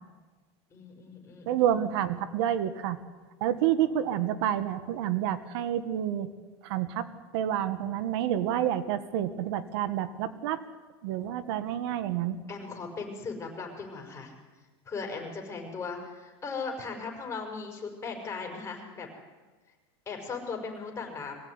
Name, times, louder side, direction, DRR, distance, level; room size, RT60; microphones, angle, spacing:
voice 1, 0.7-1.8 12.5-14.3 14.9-19.1 20.1-21.3, left 4 dB, 20° left, 1 dB, 5.6 m, -38 dB
voice 2, 1.5-3.0 3.4-6.3 6.6-7.0 7.3-10.6 11.0-12.4, right 11 dB, 70° right, 12 dB, 1.7 m, -28 dB
23.5 x 16.0 x 9.7 m, 1.3 s
supercardioid pair, 140°, 14 cm